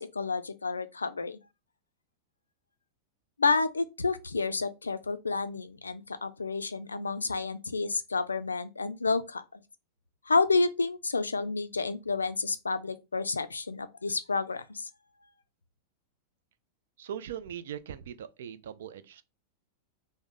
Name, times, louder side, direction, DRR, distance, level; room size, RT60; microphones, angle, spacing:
voice 1, 0.0-1.4 3.4-9.6 10.3-14.9, left 4 dB, 75° left, 0.3 m, -30 dB
voice 2, 17.0-19.2, right 9 dB, 60° right, 0.3 m, -40 dB
3.5 x 2.1 x 3.6 m
figure-of-eight pair, 90°, 0 cm